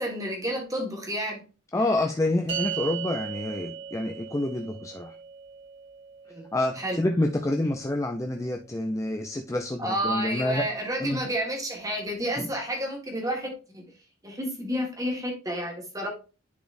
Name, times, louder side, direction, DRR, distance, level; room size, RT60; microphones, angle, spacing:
voice 1, 0.0-1.4 6.3-6.5 6.8-7.0 9.8-13.8 14.2-16.1, right 1 dB, 15° right, 2 dB, 1.6 m, -30 dB
voice 2, 1.7-5.2 6.5-10.7 11.0-11.3 12.4-12.5, left 1 dB, 15° left, 3 dB, 0.4 m, -28 dB
sound 1, 2.5-9.0, right 8 dB, 60° right, 1.8 m, -39 dB
10.0 x 4.1 x 2.6 m, 0.32 s
head